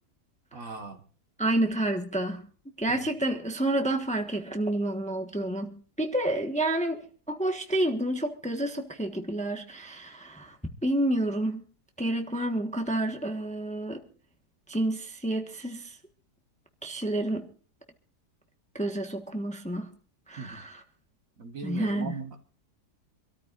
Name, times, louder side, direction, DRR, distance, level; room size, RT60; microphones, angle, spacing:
voice 1, 0.5-1.0 2.9-3.0 20.4-20.6 21.4-22.4, right 4 dB, 55° right, 1.8 m, -38 dB
voice 2, 1.4-2.4 2.8-10.6 10.8-11.6 12.0-14.0 14.7-16.0 16.8-17.5 18.7-19.9 20.3-20.8 21.6-22.1, right 1 dB, 5° left, 1.2 m, -29 dB
26.5 x 13.5 x 2.5 m
omnidirectional pair, 1.7 m